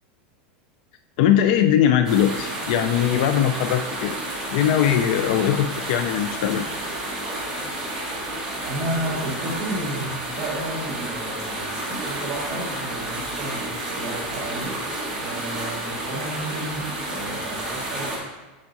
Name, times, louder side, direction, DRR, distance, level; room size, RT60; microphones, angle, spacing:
voice 1, 1.2-6.7, left 10 dB, 55° left, 8 dB, 0.3 m, -21 dB
sound 1, 2.0-18.2, right 1 dB, 10° right, 1.6 m, -30 dB
voice 2, 8.6-14.7 15.2-18.1, right 1 dB, 35° right, -7 dB, 1.9 m, -32 dB
6.9 x 6.1 x 2.7 m, 1.2 s
supercardioid pair, 165°, 5 cm